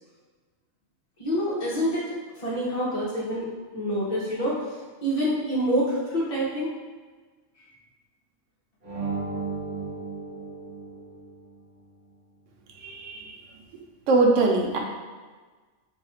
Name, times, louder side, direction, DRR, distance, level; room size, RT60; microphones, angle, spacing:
voice 1, 1.2-3.5 3.7-4.7 5.0-6.7, equal, 35° left, -7 dB, 0.8 m, -27 dB
sound 1, 8.8-11.5, right 4 dB, 45° right, 1.0 m, -34 dB
voice 2, 12.8-13.3 14.1-14.8, right 3 dB, 85° right, 1 dB, 0.9 m, -22 dB
2.7 x 2.4 x 4.2 m, 1.4 s
omnidirectional pair, 1.2 m